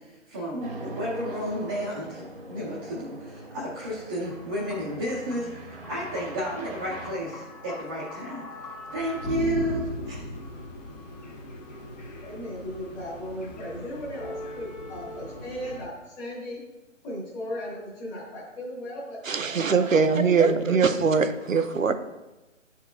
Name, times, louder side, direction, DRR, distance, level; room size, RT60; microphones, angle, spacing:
voice 1, 0.0-8.5 8.9-10.2, equal, 15° right, -8 dB, 0.7 m, -32 dB
sound 1, 0.6-7.1, right 1 dB, 45° right, 1.2 m, -42 dB
sound 2, 4.3-15.9, left 1 dB, 35° left, 1.0 m, -39 dB
voice 2, 12.2-16.6 17.0-19.2 19.5-20.6, left 1 dB, 10° left, -7 dB, 1.1 m, -37 dB
voice 3, 19.3-21.9, right 5 dB, 90° right, 9 dB, 0.6 m, -22 dB
9.7 x 4.5 x 2.3 m, 1.0 s
figure-of-eight pair, 145°, 38 cm